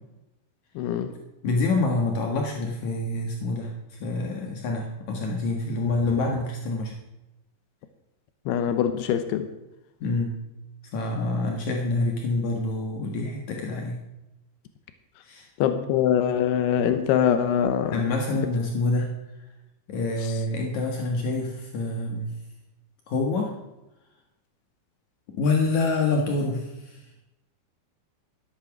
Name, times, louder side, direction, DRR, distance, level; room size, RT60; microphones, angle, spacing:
voice 1, 0.8-1.1 8.5-9.5 15.6-18.0, left 9 dB, 90° left, 9 dB, 2.3 m, -23 dB
voice 2, 1.4-6.9 10.0-10.4 10.9-14.0 15.2-15.5 17.9-19.1 19.9-22.3 23.1-23.5 25.3-27.0, left 2 dB, 75° left, 1 dB, 1.7 m, -26 dB
13.5 x 11.5 x 6.0 m, 0.98 s
omnidirectional pair, 5.9 m